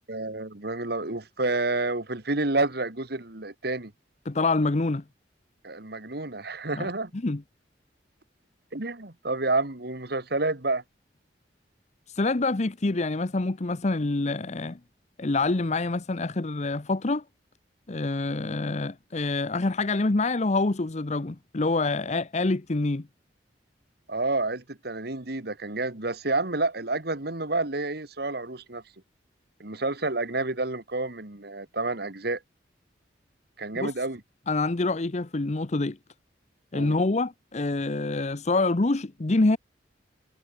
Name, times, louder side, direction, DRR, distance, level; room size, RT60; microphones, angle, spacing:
voice 1, 0.1-3.9 5.6-7.1 8.7-10.8 24.1-28.8 29.6-32.4 33.6-34.2 36.7-37.0, right 2 dB, 60° right, 2.2 m, -29 dB
voice 2, 4.3-5.0 6.7-6.9 7.2-7.4 12.1-14.8 15.2-17.2 17.9-23.1 33.7-33.9 34.5-36.0 36.7-39.6, left 2 dB, 40° left, 0.8 m, -26 dB
head